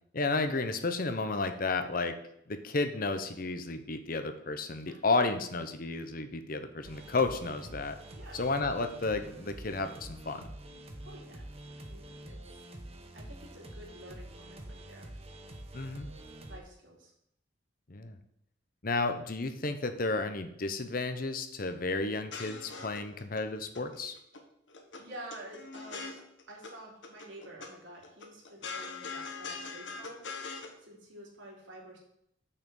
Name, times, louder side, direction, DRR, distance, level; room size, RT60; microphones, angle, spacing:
voice 1, 0.1-2.2 2.5-8.0 8.3-10.5 15.7-16.1 17.9-18.2 18.8-24.2, left 3 dB, 50° left, 8 dB, 0.9 m, -32 dB
sound 1, 6.8-16.6, right 1 dB, 30° right, 1.1 m, -47 dB
voice 2, 11.0-11.4 11.8-12.4 13.1-15.1 16.5-17.1 25.0-26.2 26.5-30.2 30.8-32.0, right 1 dB, 90° right, -2 dB, 3.2 m, -49 dB
sound 2, 22.1-23.4 23.8-24.4 24.7-26.7 27.0-27.7 28.0-30.7, left 4 dB, 80° left, 1.4 m, -42 dB
6.7 x 5.8 x 7.0 m, 0.75 s
head